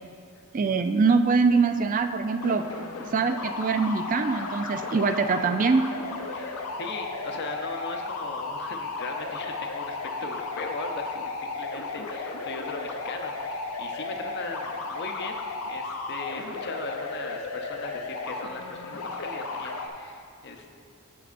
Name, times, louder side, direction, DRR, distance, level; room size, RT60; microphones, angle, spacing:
voice 1, 0.5-2.7 3.1-5.8, right 4 dB, 40° right, 8 dB, 0.3 m, -23 dB
sound 1, 2.4-19.9, left 3 dB, 85° left, 0.6 m, -34 dB
voice 2, 6.3-15.4 15.7-20.7, left 3 dB, 50° left, 4 dB, 0.7 m, -38 dB
15.0 x 5.4 x 2.5 m, 2.3 s
head